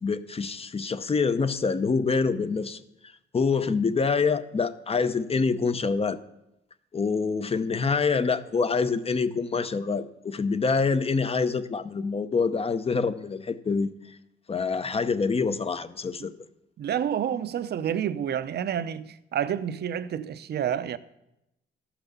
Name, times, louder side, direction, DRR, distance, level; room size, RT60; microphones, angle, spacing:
voice 1, 0.0-2.8 3.3-6.2 6.9-13.9 14.5-16.3, left 4 dB, 30° left, 0.7 m, -26 dB
voice 2, 16.8-21.0, right 9 dB, 55° right, 0.7 m, -29 dB
13.0 x 5.9 x 6.8 m
cardioid pair, 90°, 20 cm